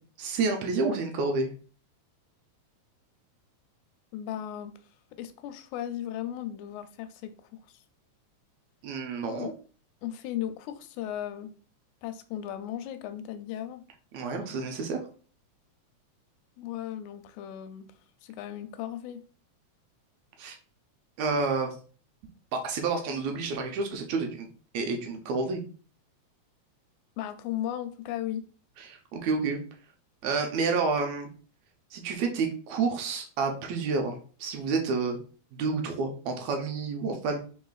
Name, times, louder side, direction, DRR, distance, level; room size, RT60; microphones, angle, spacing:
voice 1, 0.2-1.5 8.8-9.5 14.1-15.0 20.4-20.6 21.2-21.7 22.5-24.5 24.7-25.6 28.8-29.6 30.2-31.3 31.9-35.2 35.5-37.4, right 4 dB, 80° right, 1.9 m, -29 dB
voice 2, 4.1-4.7 5.2-7.8 9.2-9.5 10.0-11.5 12.0-13.8 16.6-17.9 18.2-19.2 27.2-28.4, left 11 dB, 90° left, 2.0 m, -36 dB
4.4 x 3.9 x 2.3 m
omnidirectional pair, 3.3 m